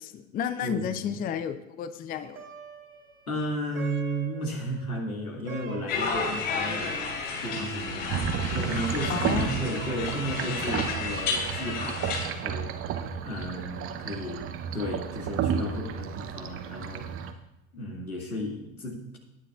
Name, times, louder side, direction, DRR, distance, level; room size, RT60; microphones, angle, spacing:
voice 1, 0.0-2.4 9.1-9.6, left 8 dB, 20° left, 12 dB, 0.5 m, -32 dB
voice 2, 0.6-1.2 3.3-7.0 7.4-12.7 13.2-17.3 17.7-19.2, equal, 85° left, 0 dB, 2.1 m, -34 dB
Plucked string instrument, 2.1-11.6, right 4 dB, 75° right, 2.4 m, -45 dB
sound 1, 5.9-12.3, left 4 dB, 55° left, 4.0 m, -32 dB
sound 2, 8.1-17.3, right 8 dB, 30° right, 0.8 m, -32 dB
18.5 x 9.9 x 2.4 m, 0.95 s
figure-of-eight pair, 75°, 42 cm